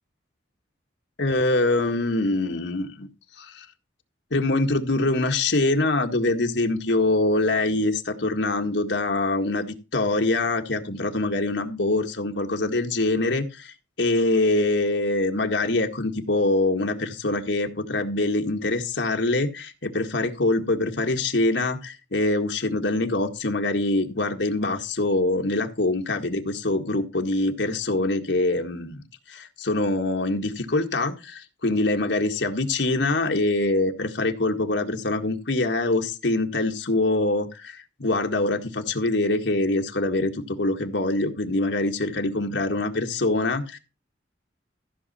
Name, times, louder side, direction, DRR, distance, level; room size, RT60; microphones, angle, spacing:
voice 1, 1.2-3.1 3.4-3.7 4.3-43.8, left 2 dB, 70° left, 4 dB, 1.8 m, -24 dB
15.0 x 6.7 x 4.3 m, 0.29 s
head